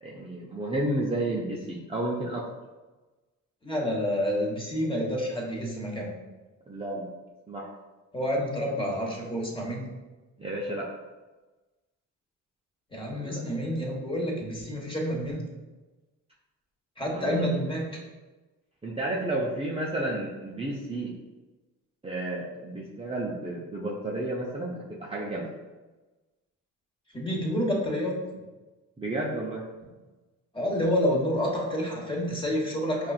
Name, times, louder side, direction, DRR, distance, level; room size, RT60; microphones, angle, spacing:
voice 1, 0.0-2.5 6.7-7.1 7.5-7.7 10.4-10.9 13.2-13.4 17.1-17.5 18.8-21.1 22.0-25.5 29.0-29.6, right 1 dB, 15° right, -4 dB, 0.6 m, -31 dB
voice 2, 3.6-6.1 8.1-9.9 12.9-15.4 17.0-17.8 27.1-28.4 30.5-33.1, equal, 15° left, -3 dB, 1.2 m, -28 dB
5.4 x 2.5 x 2.4 m, 1.2 s
supercardioid pair, 70°, 33 cm